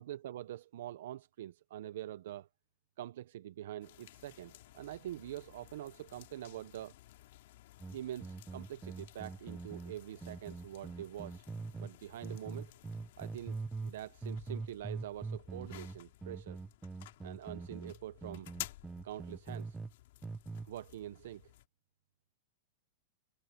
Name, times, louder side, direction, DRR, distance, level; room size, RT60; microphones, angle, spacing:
voice 1, 0.0-2.5 3.0-6.9 7.9-11.4 11.8-12.7 13.2-16.6 17.2-18.5 19.0-19.8 20.6-21.5, right 12 dB, 55° right, 0.6 m, -45 dB
sound 1, 3.8-21.7, left 16 dB, 50° left, 2.2 m, -54 dB
sound 2, 7.8-11.9 12.2-14.0 14.2-19.9 20.2-20.7, right 4 dB, 5° right, 0.5 m, -43 dB
supercardioid pair, 180°, 0 cm